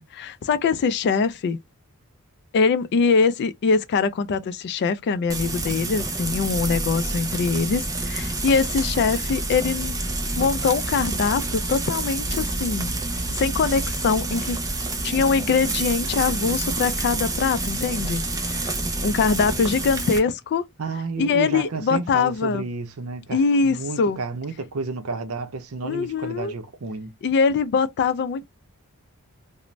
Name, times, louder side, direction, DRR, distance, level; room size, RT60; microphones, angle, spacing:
voice 1, 0.0-1.6 2.5-10.0 10.4-12.9 13.3-14.6 15.0-18.6 19.0-20.7 21.2-22.7 23.3-24.2 25.8-26.5 27.2-28.4, left 5 dB, 50° left, 0.3 m, -23 dB
Frying (food), 5.3-20.2, right 2 dB, 15° right, 0.5 m, -28 dB
voice 2, 20.8-27.1, right 4 dB, 70° right, 0.6 m, -31 dB
2.5 x 2.0 x 3.1 m
head